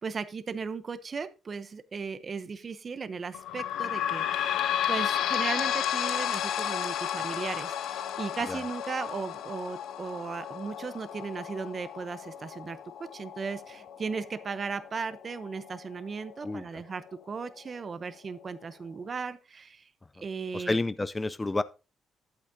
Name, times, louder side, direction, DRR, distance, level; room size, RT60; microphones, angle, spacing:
voice 1, 0.0-12.8 13.1-19.9 20.2-20.8, right 5 dB, 40° right, 0.7 m, -36 dB
sound 1, 3.3-16.5 17.1-17.2 17.4-17.5 18.3-18.4, left 10 dB, 80° left, 0.5 m, -33 dB
voice 2, 16.4-16.8 20.5-21.6, left 2 dB, 20° left, 0.4 m, -30 dB
11.5 x 8.3 x 2.7 m
cardioid pair, 90°, 0 cm